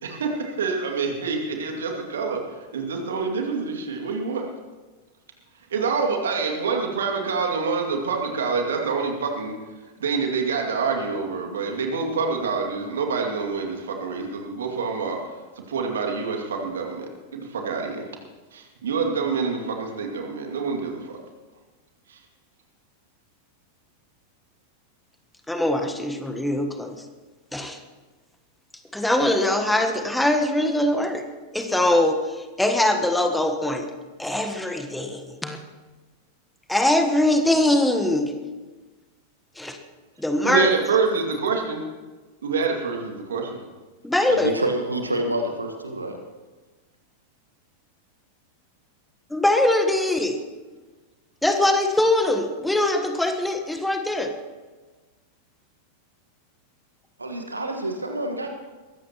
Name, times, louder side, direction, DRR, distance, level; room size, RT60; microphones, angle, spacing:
voice 1, 0.0-2.4 2.7-4.5 5.7-9.6 10.0-15.2 15.6-18.0 18.5-21.2 22.1-22.2 40.4-41.8 42.4-43.6, right 5 dB, 65° right, 2 dB, 2.4 m, -26 dB
voice 2, 25.5-27.0 27.5-27.8 28.9-31.3 31.5-33.9 34.2-35.6 36.7-38.3 39.6-39.8 40.2-40.7 44.0-44.5 49.3-50.4 51.4-54.3, left 1 dB, 5° left, 6 dB, 1.3 m, -22 dB
voice 3, 44.3-46.2 57.2-58.5, right 1 dB, 80° right, 4 dB, 1.5 m, -27 dB
22.0 x 15.0 x 3.0 m, 1.3 s
figure-of-eight pair, 90°, 0 cm